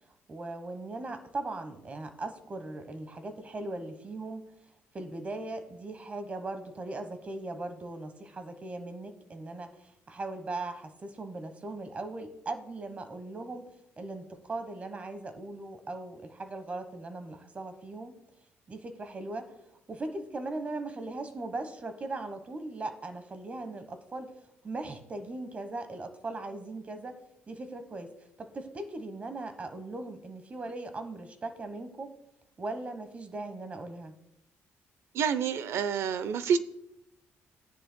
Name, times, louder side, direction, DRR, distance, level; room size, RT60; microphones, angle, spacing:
voice 1, 0.3-4.4 4.9-13.6 14.0-18.2 18.7-19.5 19.9-24.3 24.6-28.1 28.4-32.1 32.6-34.1, right 2 dB, 30° right, 9 dB, 1.2 m, -39 dB
voice 2, 35.1-36.6, right 7 dB, 70° right, 14 dB, 0.6 m, -28 dB
15.0 x 9.9 x 2.2 m, 0.80 s
cardioid pair, 125°, 5 cm